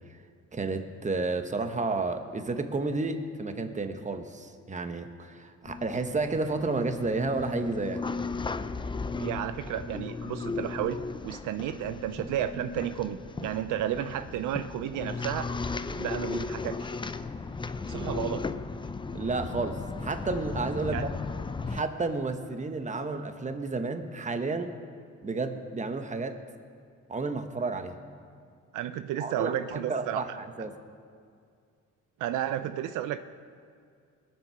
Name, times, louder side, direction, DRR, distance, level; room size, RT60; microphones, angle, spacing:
voice 1, 0.5-8.0 15.9-16.0 17.9-18.1 19.1-21.1 21.7-24.7 25.2-26.4 27.1-27.9 29.2-30.7, right 3 dB, 25° right, 8 dB, 1.0 m, -31 dB
sound 1, 5.6-21.8, left 4 dB, 15° left, 0.5 m, -36 dB
voice 2, 9.2-15.5 16.0-16.9 17.9-18.5 20.8-21.0 28.7-30.4 32.2-33.2, right 11 dB, 80° right, 11 dB, 0.5 m, -32 dB
20.5 x 7.6 x 5.7 m, 2.3 s
cardioid pair, 90°, 30 cm